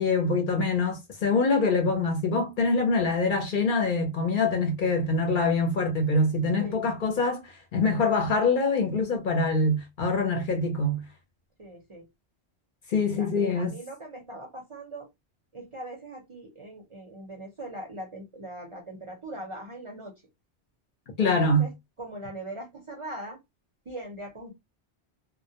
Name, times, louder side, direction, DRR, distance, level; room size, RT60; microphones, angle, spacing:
voice 1, 0.0-11.0 12.9-13.8 21.2-21.7, left 3 dB, 55° left, 0.7 m, -24 dB
voice 2, 11.6-12.0 13.1-15.1 15.5-20.1 21.2-21.7 22.0-23.4 23.9-24.5, right 1 dB, 35° right, 0.6 m, -41 dB
2.2 x 2.1 x 2.7 m
omnidirectional pair, 1.1 m